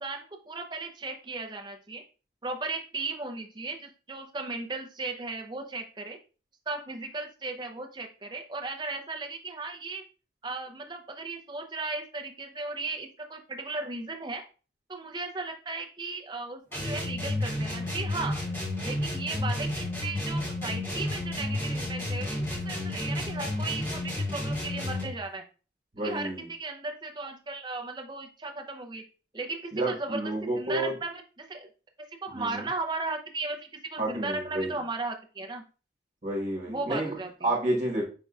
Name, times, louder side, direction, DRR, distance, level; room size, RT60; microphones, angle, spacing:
voice 1, 0.0-2.0 2.4-6.2 6.7-10.0 10.4-14.4 14.9-18.4 18.8-25.4 26.0-29.0 29.3-31.7 32.2-35.6 36.7-37.5, right 3 dB, 25° right, 0.6 m, -36 dB
sound 1, 16.7-25.2, left 1 dB, 15° left, 1.7 m, -31 dB
voice 2, 25.9-26.5 29.7-30.9 32.3-32.7 34.0-34.8 36.2-37.1 37.4-38.0, right 1 dB, 40° right, 1.5 m, -30 dB
5.3 x 3.6 x 2.4 m
head